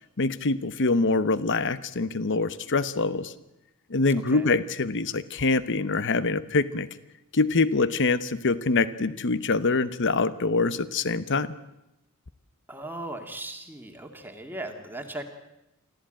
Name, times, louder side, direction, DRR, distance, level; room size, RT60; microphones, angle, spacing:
voice 1, 0.2-3.3 3.9-6.9 7.3-11.5, left 3 dB, 60° left, 15 dB, 1.0 m, -24 dB
voice 2, 12.7-15.3, right 1 dB, 10° right, 4 dB, 2.1 m, -38 dB
24.5 x 14.5 x 8.9 m, 0.92 s
head